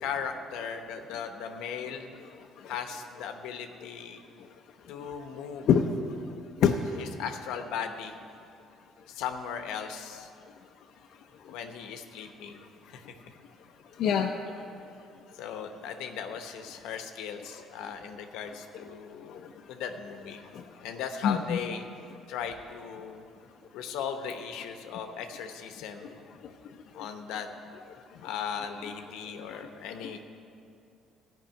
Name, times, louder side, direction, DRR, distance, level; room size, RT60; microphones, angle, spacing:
voice 1, 0.0-2.1 2.6-4.2 4.9-5.8 6.9-8.1 9.1-10.3 11.5-13.2 14.5-14.6 15.3-19.4 19.7-20.4 20.8-21.8 22.3-23.2 23.7-26.1 26.9-27.5 28.2-30.2, left 7 dB, 90° left, 6 dB, 0.9 m, -37 dB
voice 2, 5.7-6.1 6.6-7.1 14.0-14.3 17.5-17.6 19.3-19.5 20.4-20.8 21.2-21.6 26.4-26.5 27.0-27.1 29.5-29.6, left 7 dB, 70° left, 2 dB, 0.6 m, -27 dB
14.0 x 5.5 x 8.9 m, 2.5 s
cardioid pair, 105°, 0 cm